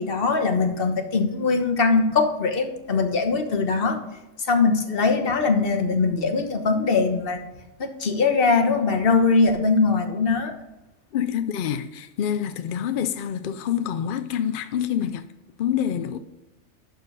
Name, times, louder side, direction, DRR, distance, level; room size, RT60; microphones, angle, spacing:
voice 1, 0.0-4.0 4.5-7.4 7.8-10.5, left 4 dB, 45° left, 1.3 m, -21 dB
voice 2, 11.1-15.3 15.6-16.2, left 9 dB, 65° left, 0.5 m, -26 dB
12.0 x 4.5 x 5.4 m
omnidirectional pair, 1.3 m